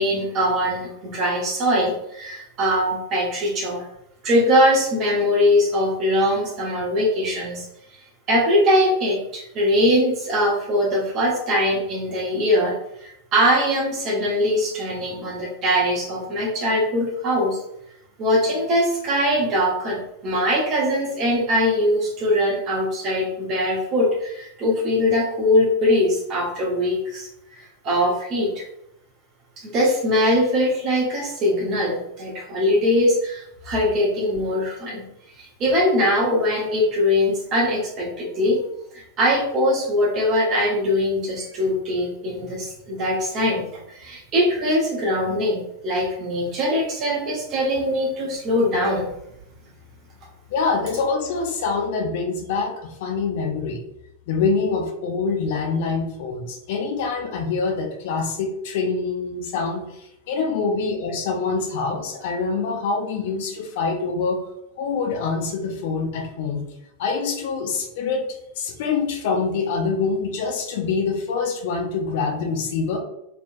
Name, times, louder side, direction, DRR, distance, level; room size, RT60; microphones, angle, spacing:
voice 1, 0.0-3.8 4.2-7.7 8.3-12.7 13.0-17.6 18.2-20.0 20.2-28.6 29.6-35.0 35.4-38.6 38.9-49.1, left 1 dB, 35° right, -3 dB, 1.0 m, -21 dB
voice 2, 50.5-53.8 54.3-59.8 60.3-64.4 64.8-66.6 67.0-68.3 68.6-73.0, left 4 dB, 50° left, 4 dB, 0.6 m, -25 dB
3.3 x 3.0 x 2.5 m, 0.79 s
figure-of-eight pair, 90°, 0 cm